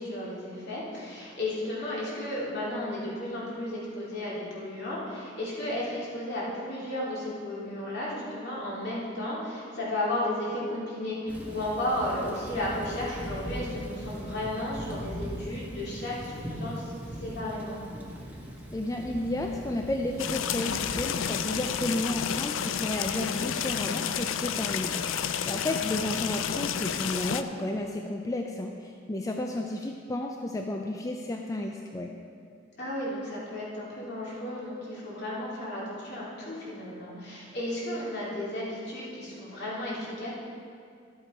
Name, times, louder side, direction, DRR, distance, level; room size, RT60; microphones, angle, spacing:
voice 1, 0.0-16.8 17.2-17.8 32.8-40.3, left 1 dB, 60° left, -6 dB, 2.8 m, -34 dB
Thunder / Rain, 11.3-25.2, equal, 10° right, 1.2 m, -41 dB
voice 2, 18.7-32.1, left 1 dB, 15° left, 2 dB, 0.4 m, -32 dB
sound 1, 20.2-27.4, left 8 dB, 85° left, 0.4 m, -30 dB
12.0 x 7.9 x 4.4 m, 2.3 s
head